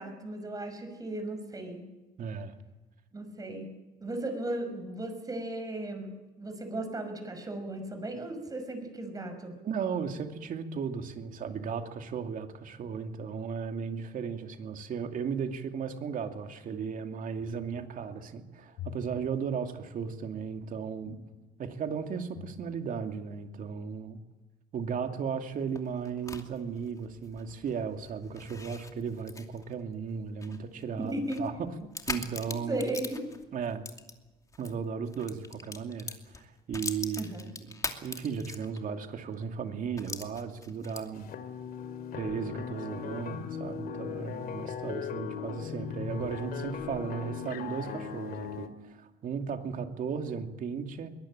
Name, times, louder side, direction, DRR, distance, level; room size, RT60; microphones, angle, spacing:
voice 1, 0.0-1.9 3.1-3.7 4.0-9.5 31.0-31.4 32.7-33.2 37.2-37.5, right 1 dB, 20° right, 6 dB, 5.9 m, -36 dB
voice 2, 2.2-2.6 9.6-21.2 21.6-24.2 24.7-31.1 31.4-32.8 33.5-33.8 34.6-41.3 42.1-51.1, right 6 dB, 55° right, 6 dB, 2.6 m, -35 dB
sound 1, 17.3-18.3 18.7-21.8 22.2-22.7 23.0-23.1, left 9 dB, 85° left, 5.1 m, -48 dB
sound 2, 25.5-34.7 35.1-39.0 39.3-39.4 40.0-41.3, left 3 dB, 20° left, 2.7 m, -42 dB
sound 3, 41.1-48.7, left 7 dB, 60° left, 2.5 m, -38 dB
23.0 x 19.0 x 8.9 m, 1.1 s
cardioid pair, 110°, 17 cm